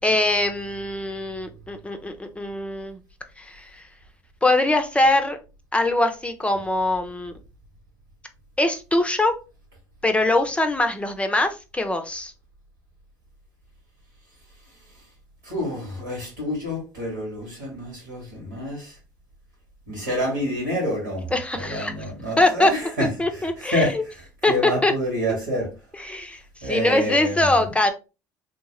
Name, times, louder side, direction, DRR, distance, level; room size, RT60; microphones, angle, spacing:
voice 1, 0.0-3.0 3.4-3.8 4.4-5.4 5.7-7.3 8.6-9.4 10.0-12.3 21.3-21.9 22.4-22.7 23.2-24.0 24.4-24.9 25.3-25.4 25.9-27.9, left 2 dB, 10° left, 7 dB, 0.6 m, -22 dB
voice 2, 15.5-18.9 19.9-21.3 21.5-23.1 23.7-23.9 24.5-25.7 26.6-27.7, equal, 90° right, -1 dB, 1.9 m, -27 dB
3.1 x 2.7 x 2.9 m, 0.30 s
hypercardioid pair, 65°, 10 cm